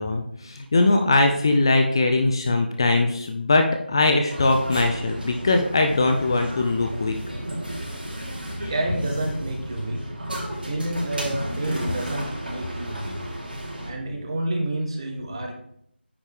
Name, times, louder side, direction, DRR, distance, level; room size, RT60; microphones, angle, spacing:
voice 1, 0.0-7.2 8.6-8.7, left 2 dB, 25° left, 4 dB, 0.5 m, -21 dB
sound 1, 4.3-13.9, right 1 dB, 55° right, 3.1 m, -33 dB
voice 2, 8.7-10.0 10.6-13.2 13.8-15.5, right 1 dB, 30° right, 2 dB, 1.3 m, -29 dB
9.5 x 5.2 x 3.5 m, 0.71 s
figure-of-eight pair, 165°, 6 cm